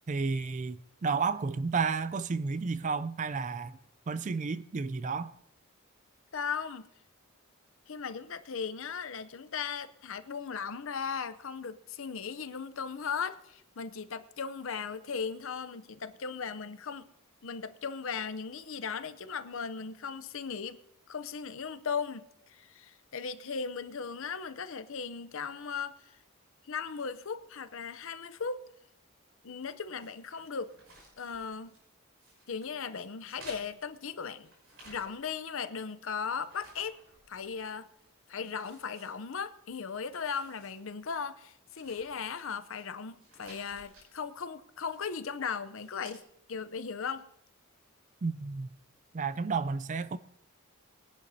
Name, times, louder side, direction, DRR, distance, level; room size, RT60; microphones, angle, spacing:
voice 1, 0.1-3.8 4.1-5.3 48.2-48.7 49.1-50.2, right 4 dB, 35° right, 0.3 m, -32 dB
voice 2, 6.3-6.9 7.9-17.1 17.4-20.8 21.1-26.0 26.6-28.6 29.4-30.7 31.2-31.7 32.5-34.5 34.8-37.0 37.3-37.9 38.3-46.2 46.5-47.3, left 6 dB, 60° left, 0.6 m, -37 dB
sound 1, 30.0-31.9 32.2-32.7 33.2-35.4 35.7-37.6 38.0-38.1 38.5-39.6 40.0-40.8 41.1-41.2 41.6-42.8 43.2-44.1 44.8-45.2 45.6-46.2, right 1 dB, 65° right, 5.5 m, -56 dB
22.0 x 11.0 x 2.7 m
head